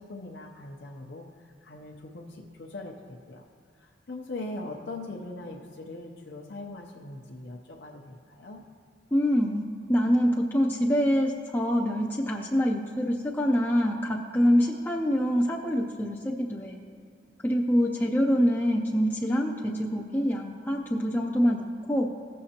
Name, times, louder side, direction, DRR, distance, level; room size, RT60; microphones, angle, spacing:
voice 1, 0.0-3.4 3.7-8.6, left 2 dB, 65° left, -1 dB, 0.7 m, -41 dB
voice 2, 9.1-16.8 17.4-22.1, equal, 10° left, -2 dB, 0.4 m, -25 dB
16.0 x 6.4 x 2.9 m, 2.4 s
head